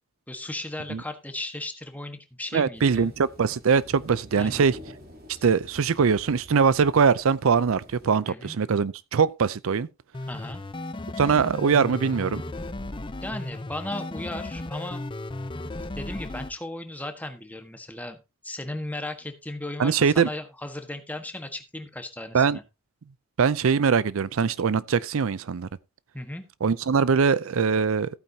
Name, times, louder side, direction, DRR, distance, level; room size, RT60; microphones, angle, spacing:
voice 1, 0.3-3.1 4.4-4.7 5.4-5.5 8.3-8.6 10.3-10.6 13.2-15.0 15.9-18.2 18.4-22.6 26.1-26.4, left 1 dB, 5° left, 1.3 m, -36 dB
voice 2, 2.5-4.8 5.4-9.9 11.2-12.4 19.8-20.3 22.3-22.6 23.4-25.7 26.6-28.1, right 5 dB, 70° right, 0.5 m, -22 dB
sound 1, 2.7-8.2, equal, 45° right, 3.3 m, -48 dB
sound 2, 10.1-16.5, left 2 dB, 25° left, 0.6 m, -35 dB
15.0 x 8.8 x 2.8 m
head